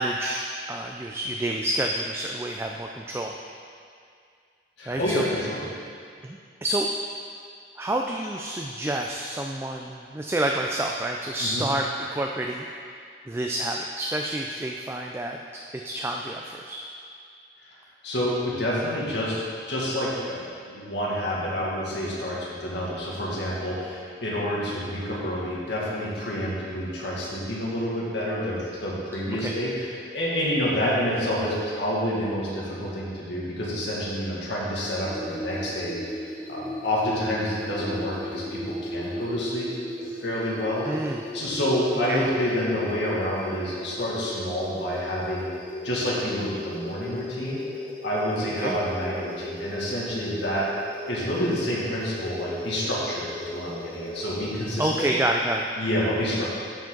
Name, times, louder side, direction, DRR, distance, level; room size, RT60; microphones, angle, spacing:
voice 1, 0.0-3.3 4.9-5.3 6.2-6.9 7.8-12.7 13.3-15.4 15.8-16.8 29.4-29.5 40.8-41.2 42.1-42.2 48.6-48.7 54.8-55.7, right 1 dB, 15° right, 1 dB, 0.3 m, -28 dB
voice 2, 4.8-5.6 11.4-11.6 18.0-39.7 40.0-40.9 41.3-45.5 45.8-47.6 48.0-50.7 51.1-55.1 55.8-56.5, equal, 80° left, -6 dB, 2.0 m, -28 dB
sound 1, 35.0-54.5, left 1 dB, 10° left, 0.8 m, -37 dB
13.0 x 5.1 x 3.9 m, 2.2 s
head